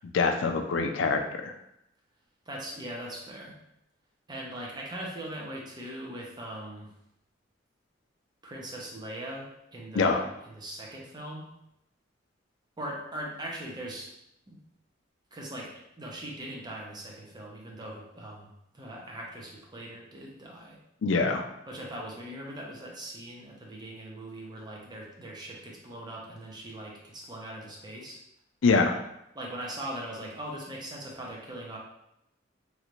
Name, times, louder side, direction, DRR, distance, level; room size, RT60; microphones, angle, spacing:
voice 1, 0.1-1.5 9.9-10.2 21.0-21.4 28.6-29.0, left 4 dB, 70° left, 5 dB, 0.4 m, -24 dB
voice 2, 2.5-3.6 4.3-6.9 8.4-11.5 12.8-14.1 14.5-14.6 15.3-20.8 21.7-28.2 29.3-31.8, right 1 dB, 25° right, -2 dB, 0.7 m, -40 dB
3.2 x 2.5 x 3.0 m, 0.81 s
head